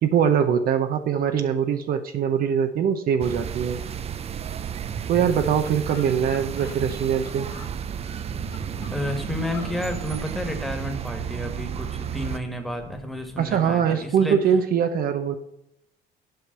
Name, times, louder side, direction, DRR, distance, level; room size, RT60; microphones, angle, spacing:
voice 1, 0.0-3.8 5.1-7.5 13.4-15.4, right 8 dB, 60° right, 8 dB, 0.8 m, -22 dB
sound 1, 3.2-12.4, right 8 dB, 35° right, 0.5 m, -32 dB
sound 2, 5.2-5.3 5.5-5.6 5.8-7.7 8.3-10.2, left 7 dB, 90° left, 1.9 m, -46 dB
sound 3, 7.1-13.8, left 3 dB, 70° left, 1.5 m, -45 dB
voice 2, 8.9-14.4, left 1 dB, ahead, 4 dB, 1.7 m, -31 dB
7.8 x 5.2 x 7.3 m, 0.80 s
cardioid pair, 110°, 17 cm